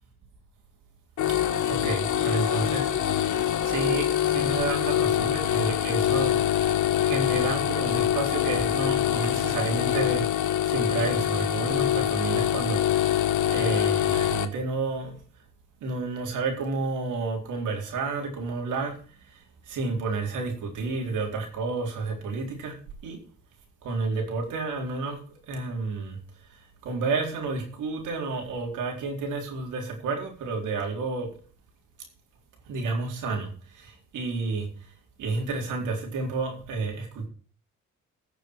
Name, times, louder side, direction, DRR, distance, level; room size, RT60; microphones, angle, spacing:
sound 1, 1.2-14.4, left 11 dB, 75° left, 1.3 m, -25 dB
voice 1, 1.4-2.9 3.6-6.4 7.0-15.1 15.8-19.0 19.3-22.8 23.0-23.2 23.8-25.2 25.5-26.2 26.5-31.3 32.7-34.7 35.2-37.3, right 3 dB, 85° right, 4.0 m, -30 dB
16.0 x 7.0 x 4.7 m
cardioid pair, 90°, 30 cm